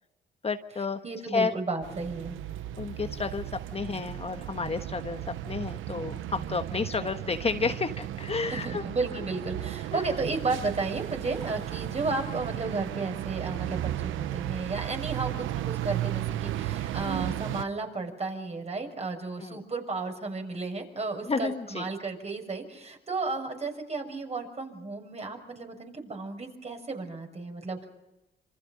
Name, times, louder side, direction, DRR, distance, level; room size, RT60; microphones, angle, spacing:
voice 1, 0.4-1.0 1.3-1.5 2.8-5.2 5.5-8.8 9.9-10.0 19.4-19.6 21.3-21.9, left 4 dB, 30° left, 7 dB, 1.3 m, -31 dB
voice 2, 1.0-2.4 8.5-27.8, right 3 dB, 35° right, 4 dB, 6.2 m, -33 dB
sound 1, 1.8-17.7, right 13 dB, 85° right, 0.9 m, -35 dB
27.5 x 26.0 x 5.3 m, 0.96 s
cardioid pair, 90°, 20 cm